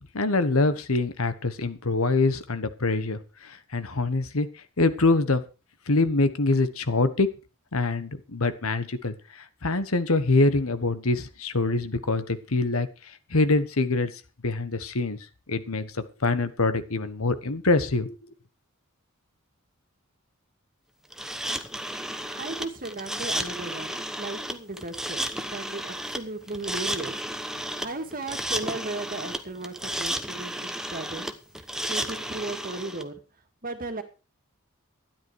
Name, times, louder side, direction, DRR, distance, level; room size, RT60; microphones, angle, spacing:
voice 1, 0.1-4.5 4.8-5.4 5.9-7.3 7.7-12.9 13.3-14.1 14.4-15.2 15.5-18.2, left 3 dB, 75° left, 12 dB, 1.3 m, -24 dB
sound 1, 21.1-33.0, right 1 dB, ahead, 1.0 m, -33 dB
voice 2, 22.4-31.3 31.6-33.2 33.6-34.0, right 2 dB, 40° right, 7 dB, 1.9 m, -36 dB
13.0 x 10.5 x 4.8 m, 0.32 s
head